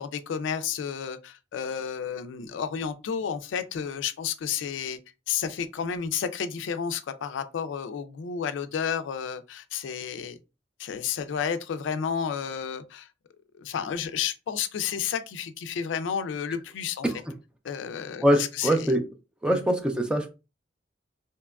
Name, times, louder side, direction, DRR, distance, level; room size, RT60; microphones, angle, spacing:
voice 1, 0.0-5.0 5.3-10.4 10.8-13.1 13.6-17.1 17.6-18.9 19.5-19.6, left 7 dB, 75° left, 0.3 m, -31 dB
voice 2, 18.2-19.0 19.4-20.3, equal, 5° right, 0.4 m, -23 dB
2.8 x 2.2 x 2.3 m
head